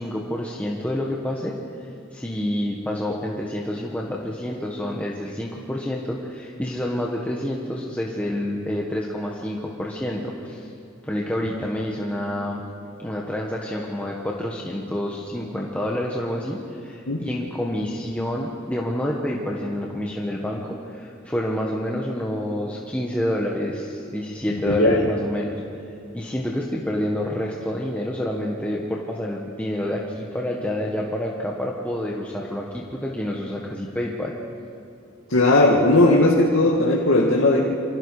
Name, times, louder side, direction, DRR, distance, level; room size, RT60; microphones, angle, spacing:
voice 1, 0.0-1.5 2.1-10.7 11.0-12.6 13.0-25.6 26.1-34.3, left 1 dB, 5° left, -2 dB, 1.5 m, -28 dB
voice 2, 24.7-25.1 35.3-37.6, left 2 dB, 85° left, -3 dB, 2.1 m, -17 dB
28.0 x 24.5 x 4.9 m, 2.6 s
head